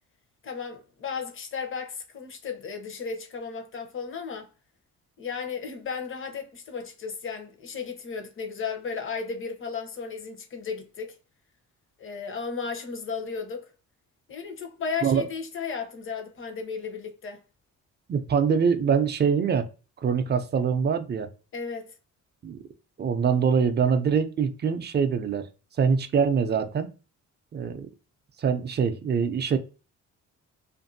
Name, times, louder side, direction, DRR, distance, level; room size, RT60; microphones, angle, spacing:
voice 1, 0.4-4.5 5.2-11.2 12.0-13.7 14.3-17.4 21.5-21.9, left 5 dB, 45° left, 0.8 m, -34 dB
voice 2, 18.1-19.7 20.0-21.3 22.4-22.6 23.0-25.5 25.8-26.9 27.5-27.9 28.4-29.6, right 6 dB, 35° right, 0.5 m, -24 dB
2.6 x 2.6 x 2.5 m
cardioid pair, 90°, 30 cm